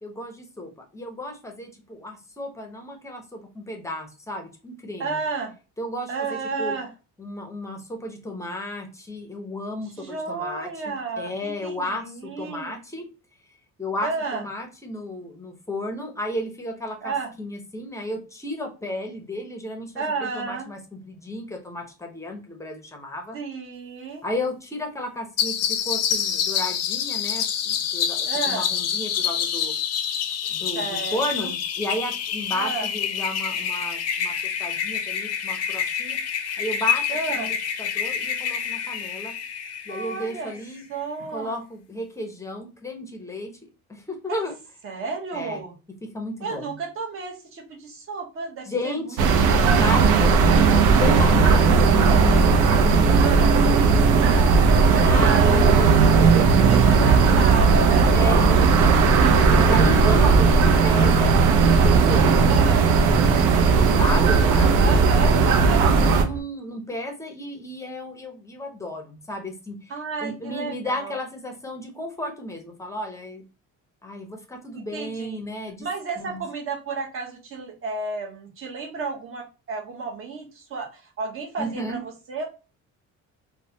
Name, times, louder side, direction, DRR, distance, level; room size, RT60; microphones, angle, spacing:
voice 1, 0.0-5.2 5.8-6.8 7.2-13.1 13.8-23.4 24.2-29.7 30.5-34.3 34.6-36.2 36.6-39.3 39.9-40.8 41.3-44.6 45.3-45.6 46.0-46.7 48.6-49.3 49.7-54.5 55.0-59.0 59.6-61.4 61.8-65.0 65.7-69.9 70.2-73.4 74.0-75.9 76.2-76.4 81.6-82.0, left 1 dB, 10° left, 3 dB, 0.6 m, -33 dB
voice 2, 5.0-5.5 6.1-6.9 10.0-12.7 14.0-14.4 17.0-17.3 20.0-20.7 23.3-24.2 28.2-28.6 30.7-31.5 32.5-32.9 37.1-37.5 39.9-40.5 40.9-41.6 44.3-44.4 44.8-45.7 46.4-49.2 49.4-49.8 53.2-53.6 54.9-55.8 56.7-58.1 60.2-60.9 62.4-62.9 64.7-65.9 69.9-71.2 74.7-75.4 75.8-82.5, right 4 dB, 45° right, 1 dB, 1.0 m, -32 dB
sound 1, 25.4-40.6, left 8 dB, 55° left, 0.5 m, -27 dB
sound 2, 49.2-66.2, right 5 dB, 75° right, 0.6 m, -17 dB
Thunder, 55.3-66.4, right 3 dB, 90° right, 1.0 m, -30 dB
3.1 x 2.1 x 2.7 m, 0.31 s
cardioid pair, 130°, 31 cm